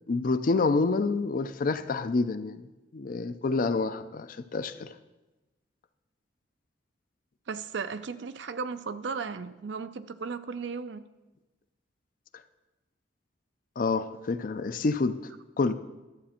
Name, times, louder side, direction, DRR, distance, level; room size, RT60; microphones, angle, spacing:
voice 1, 0.1-2.6 2.9-4.9 13.8-15.2 15.6-15.7, left 3 dB, 45° left, 0.4 m, -28 dB
voice 2, 7.5-11.0, right 5 dB, 65° right, 0.5 m, -35 dB
11.5 x 7.7 x 4.3 m
head